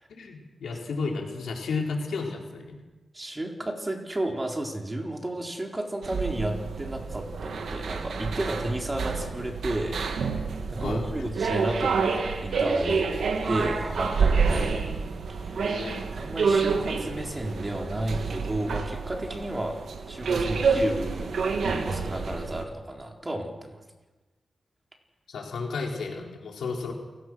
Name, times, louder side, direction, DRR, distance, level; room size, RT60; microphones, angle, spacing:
voice 1, 0.1-2.8 10.8-11.0 15.5-16.1 25.3-26.9, left 4 dB, 90° left, 0 dB, 4.6 m, -33 dB
voice 2, 3.1-10.0 10.7-13.1 13.5-14.8 15.3-15.6 16.2-19.8 20.1-23.8, right 1 dB, 20° right, 1 dB, 4.2 m, -32 dB
sound 1, 6.0-22.6, right 5 dB, 80° right, 2.5 m, -28 dB
28.5 x 17.5 x 6.5 m, 1.2 s
cardioid pair, 85°, 0 cm